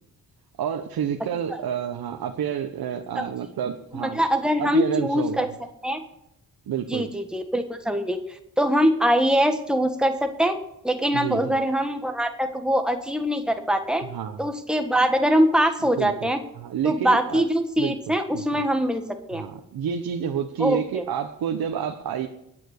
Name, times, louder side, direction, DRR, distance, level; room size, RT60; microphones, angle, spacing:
voice 1, 0.6-4.2 4.6-5.5 6.7-7.1 11.1-11.5 14.0-14.4 16.0-16.3 16.5-17.4 17.8-18.0 18.3-18.6 19.3-22.3, right 8 dB, 90° right, 4 dB, 1.1 m, -29 dB
voice 2, 3.9-5.5 5.8-6.0 6.9-10.5 10.8-14.0 14.4-16.4 16.8-19.0 19.3-19.4 20.6-21.0, equal, ahead, 5 dB, 1.5 m, -23 dB
21.0 x 9.3 x 6.7 m, 0.82 s
wide cardioid pair, 145°, 35 cm